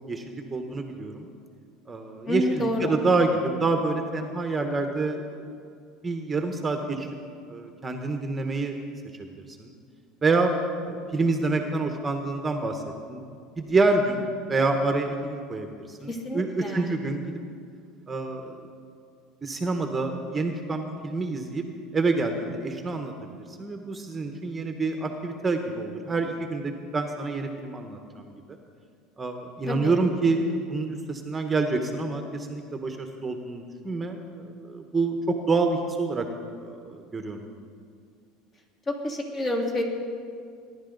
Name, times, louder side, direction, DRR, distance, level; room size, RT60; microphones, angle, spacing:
voice 1, 0.1-1.3 1.9-5.5 6.0-7.1 7.5-8.8 9.6-9.7 10.2-10.5 10.8-12.8 13.1-13.2 13.6-17.2 18.1-18.4 19.4-21.6 21.9-23.1 23.5-28.3 29.2-36.2 36.6-37.5, right 3 dB, 20° right, 5 dB, 1.1 m, -27 dB
voice 2, 2.3-3.0 16.0-17.0 29.7-30.0 38.9-39.8, left 1 dB, 30° left, 0 dB, 2.8 m, -29 dB
21.0 x 11.0 x 4.0 m, 2.2 s
supercardioid pair, 115°, 0 cm